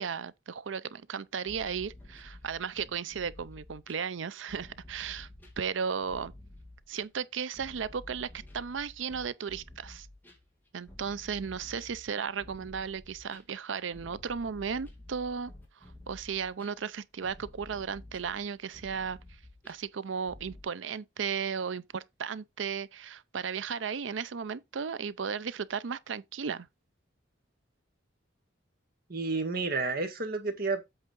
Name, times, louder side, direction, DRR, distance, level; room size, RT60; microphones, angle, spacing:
voice 1, 0.0-5.3 5.6-6.3 6.9-8.3 8.5-10.1 10.7-15.5 16.1-19.2 19.7-26.7, right 6 dB, 80° right, 0.5 m, -35 dB
sound 1, 1.5-20.6, left 1 dB, 10° left, 2.2 m, -51 dB
voice 2, 29.1-30.8, right 3 dB, 50° right, 1.7 m, -30 dB
8.0 x 3.6 x 5.3 m
head